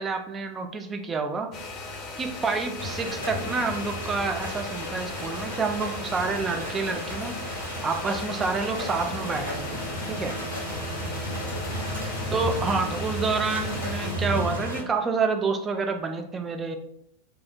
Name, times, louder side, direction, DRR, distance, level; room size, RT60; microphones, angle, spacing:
voice 1, 0.0-1.5 2.2-7.4 7.8-10.4 12.3-16.8, right 4 dB, 20° right, 5 dB, 0.3 m, -28 dB
sound 1, 1.5-14.1, left 3 dB, 35° left, 0.6 m, -38 dB
sound 2, 2.8-14.8, equal, 85° right, 1.4 m, -33 dB
sound 3, 9.1-13.3, right 2 dB, 85° left, 0.3 m, -44 dB
2.7 x 2.0 x 2.5 m, 0.75 s
figure-of-eight pair, 90°, 0 cm